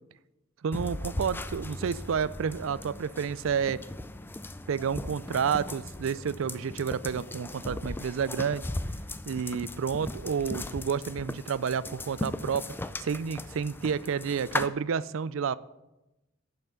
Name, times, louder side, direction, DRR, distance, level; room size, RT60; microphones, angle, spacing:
voice 1, 0.6-3.8 4.7-8.7 9.3-12.6 13.0-15.6, right 7 dB, 70° right, 18 dB, 0.4 m, -30 dB
sound 1, 0.7-14.7, left 2 dB, 10° left, 0.3 m, -38 dB
10.5 x 5.8 x 6.8 m, 0.97 s
head